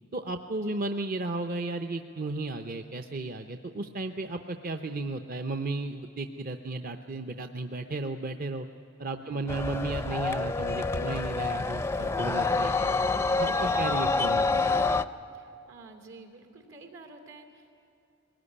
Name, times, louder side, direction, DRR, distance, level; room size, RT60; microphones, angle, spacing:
voice 1, 0.1-8.7 9.0-12.9 13.4-14.7, right 2 dB, 45° right, 7 dB, 0.7 m, -34 dB
voice 2, 9.2-9.8 15.3-17.7, right 2 dB, 80° right, 5 dB, 3.0 m, -51 dB
sound 1, 9.5-15.1, left 3 dB, 15° left, 0.4 m, -27 dB
21.5 x 19.0 x 9.9 m, 2.9 s
head